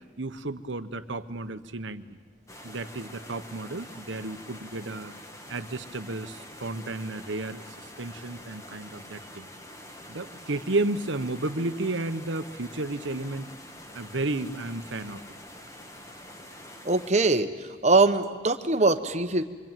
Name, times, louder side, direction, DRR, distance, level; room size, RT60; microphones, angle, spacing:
voice 1, 0.2-2.2 2.6-5.1 5.5-9.5 10.1-13.5 13.9-15.2, right 2 dB, 70° right, 10 dB, 1.2 m, -32 dB
sound 1, 2.5-17.1, left 1 dB, 15° left, 1.7 m, -46 dB
voice 2, 16.8-19.4, right 3 dB, 35° right, 8 dB, 1.2 m, -22 dB
26.0 x 24.5 x 9.2 m, 1.5 s
head